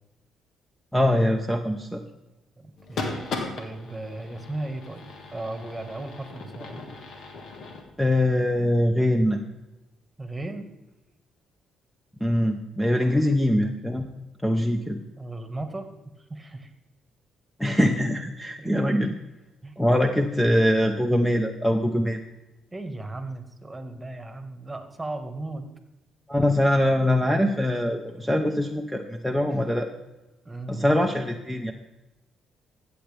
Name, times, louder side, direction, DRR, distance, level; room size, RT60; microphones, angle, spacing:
voice 1, 0.9-2.0 8.0-9.4 12.2-14.1 14.4-15.0 17.6-19.1 19.8-22.2 26.3-29.9 30.7-31.7, left 1 dB, 5° left, 5 dB, 0.9 m, -23 dB
voice 2, 2.6-3.3 3.6-6.8 10.2-10.7 13.0-13.1 15.2-15.9 16.2-16.7 18.6-18.9 19.6-19.7 22.7-25.7 30.4-30.9, right 2 dB, 20° right, 7 dB, 1.7 m, -36 dB
sound 1, 2.8-7.8, left 3 dB, 65° left, 1.7 m, -37 dB
14.5 x 8.0 x 3.5 m, 1.0 s
supercardioid pair, 60°, 0 cm